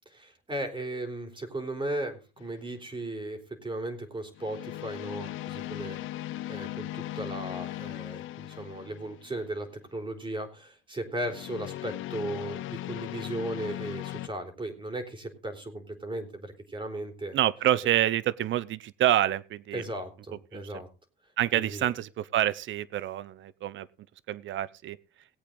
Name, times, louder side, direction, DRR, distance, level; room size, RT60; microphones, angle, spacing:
voice 1, 0.1-17.4 19.7-20.9 21.5-21.9, right 1 dB, 25° right, 3.6 m, -36 dB
sound 1, 2.4-2.7 4.4-9.4 11.2-14.3, left 15 dB, 85° left, 0.6 m, -38 dB
voice 2, 17.3-19.8 20.5-20.7 21.4-23.9 24.3-25.0, right 12 dB, 70° right, 0.7 m, -27 dB
18.5 x 8.4 x 3.9 m
cardioid pair, 90°, 20 cm